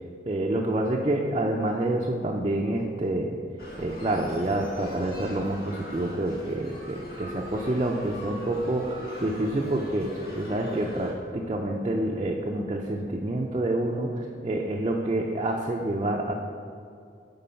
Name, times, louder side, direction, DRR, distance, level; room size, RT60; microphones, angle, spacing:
voice 1, 0.3-3.4 3.8-16.3, right 1 dB, 30° right, -1 dB, 0.5 m, -28 dB
sound 1, 3.6-11.1, equal, 55° left, 1.6 m, -41 dB
9.2 x 3.9 x 5.6 m, 2.3 s
head